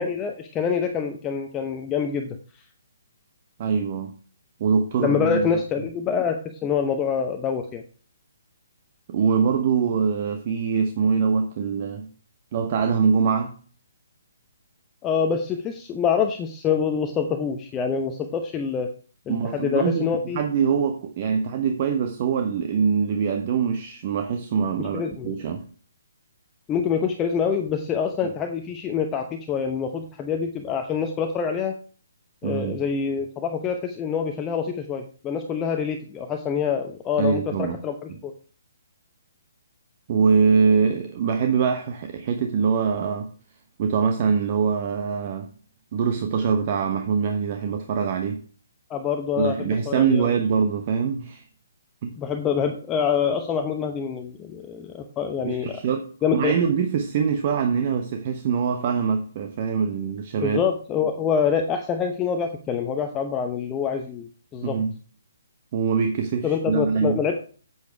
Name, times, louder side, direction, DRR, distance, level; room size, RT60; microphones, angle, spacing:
voice 1, 0.0-2.4 5.0-7.8 15.0-18.9 19.3-20.4 24.8-25.3 26.7-31.8 32.4-38.3 48.9-50.4 52.2-55.8 56.2-56.5 60.4-64.8 66.4-67.4, left 7 dB, 15° left, 0.9 m, -26 dB
voice 2, 3.6-4.1 4.6-5.5 9.1-12.1 12.5-13.5 19.3-20.1 20.3-25.7 32.4-32.8 37.2-37.8 38.1-38.2 40.1-43.3 43.8-45.5 45.9-48.4 49.4-51.4 52.0-52.2 55.4-56.1 56.3-60.6 64.6-64.9 65.7-67.2, right 6 dB, 35° right, 1.1 m, -23 dB
8.5 x 8.3 x 4.7 m
figure-of-eight pair, 135°, 0 cm